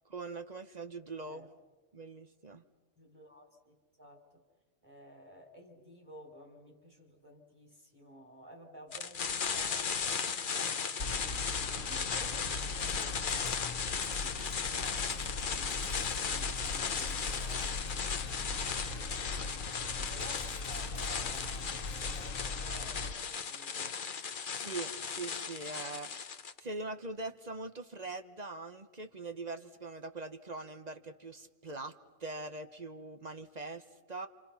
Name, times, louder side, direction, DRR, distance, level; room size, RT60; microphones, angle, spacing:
voice 1, 0.0-1.5 1.9-2.6 24.5-34.3, right 3 dB, 35° right, 8 dB, 1.0 m, -42 dB
voice 2, 3.0-4.4 4.8-17.8 18.8-24.0, equal, 15° right, 1 dB, 3.2 m, -54 dB
sound 1, 8.9-26.6, left 6 dB, 45° left, 0.9 m, -36 dB
sound 2, 11.0-23.1, left 3 dB, 70° left, 1.8 m, -40 dB
sound 3, 12.8-22.4, right 1 dB, 55° right, 3.7 m, -60 dB
28.0 x 27.5 x 5.7 m, 1.3 s
omnidirectional pair, 1.4 m